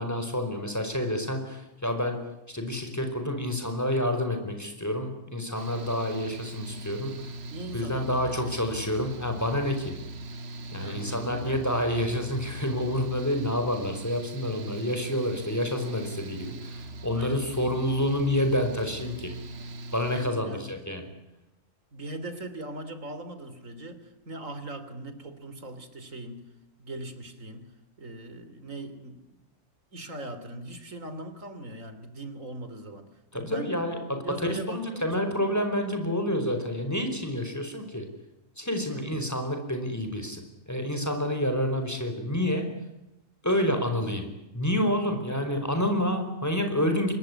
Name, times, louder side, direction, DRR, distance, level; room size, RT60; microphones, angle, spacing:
voice 1, 0.0-7.3 7.7-10.0 10.7-19.3 19.9-21.1 33.3-38.1 38.6-42.7 43.4-47.2, left 1 dB, 10° left, 6 dB, 4.8 m, -28 dB
Mechanical fan, 5.5-20.3, right 2 dB, 55° right, 1.6 m, -40 dB
voice 2, 7.4-8.7 10.7-11.7 17.1-17.5 20.1-20.8 21.9-26.5 26.8-27.7 28.0-29.4 29.9-33.8 34.2-35.3 38.9-39.2 45.3-45.4, right 1 dB, 90° right, 11 dB, 3.4 m, -40 dB
25.0 x 21.5 x 9.7 m, 0.92 s
omnidirectional pair, 1.3 m